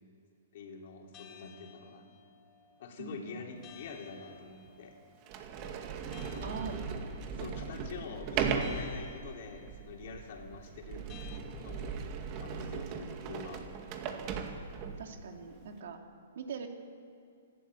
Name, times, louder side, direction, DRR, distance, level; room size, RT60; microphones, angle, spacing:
voice 1, 0.5-2.1 2.8-5.0 6.3-6.6 7.4-11.1 11.6-12.0 12.4-13.6, left 5 dB, 55° left, 1 dB, 3.4 m, -46 dB
sound 1, 1.1-11.4, left 7 dB, 25° left, 2.4 m, -57 dB
voice 2, 3.0-3.4 6.4-6.8 7.4-7.6 15.0-16.0 16.3-16.7, right 5 dB, 65° right, 3 dB, 2.9 m, -42 dB
Sliding door, 3.8-3.9 4.7-4.8 5.2-15.1, right 6 dB, 35° right, 2.1 m, -38 dB
25.5 x 12.5 x 8.4 m, 2.4 s
hypercardioid pair, 150°, 0 cm